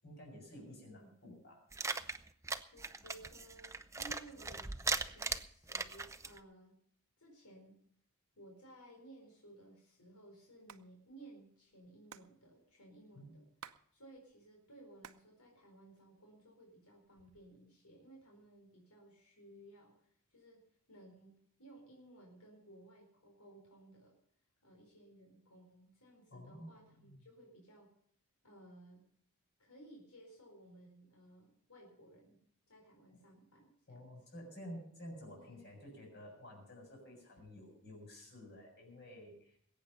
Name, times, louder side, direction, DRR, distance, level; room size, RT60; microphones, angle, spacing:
voice 1, 0.0-1.7 13.1-13.3 26.3-27.2 33.9-39.6, equal, 50° left, 1 dB, 7.1 m, -52 dB
voice 2, 0.7-1.1 2.7-6.7 7.2-7.8 8.4-13.4 13.9-20.6 20.9-24.1 24.6-27.9 28.4-29.0 29.6-32.4 32.7-34.5 35.3-35.7, right 1 dB, 90° left, 0 dB, 4.5 m, -58 dB
sound 1, 1.7-6.4, right 4 dB, 15° right, 0.6 m, -39 dB
Hands, 10.5-10.8 11.1-11.2 11.4-13.8 14.1-15.3 15.6-16.4 17.0-17.6, right 7 dB, 75° right, 0.8 m, -55 dB
21.0 x 9.0 x 5.6 m, 0.66 s
head